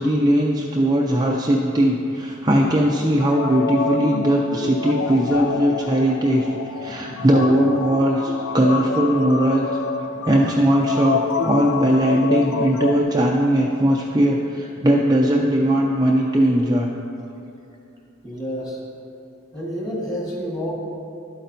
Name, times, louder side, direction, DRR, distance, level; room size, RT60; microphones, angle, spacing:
voice 1, 0.0-9.7 10.2-16.9, right 1 dB, 20° right, -2 dB, 0.4 m, -19 dB
sound 1, 3.2-13.0, left 5 dB, 90° left, 0.4 m, -27 dB
voice 2, 18.2-18.8 19.5-20.7, equal, 15° left, -4 dB, 1.5 m, -29 dB
11.5 x 8.5 x 2.7 m, 2.7 s
head